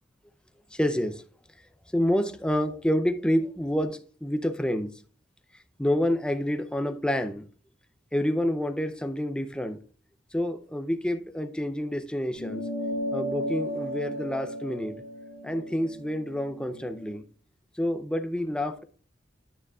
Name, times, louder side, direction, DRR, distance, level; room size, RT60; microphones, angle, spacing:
voice 1, 0.7-1.2 1.9-4.9 5.8-7.5 8.1-9.8 10.3-12.6 13.1-15.0 15.4-17.2 17.8-18.8, equal, 5° left, 0.6 m, -28 dB
sound 1, 12.4-17.2, equal, 85° left, 2.2 m, -35 dB
9.8 x 9.0 x 2.4 m
head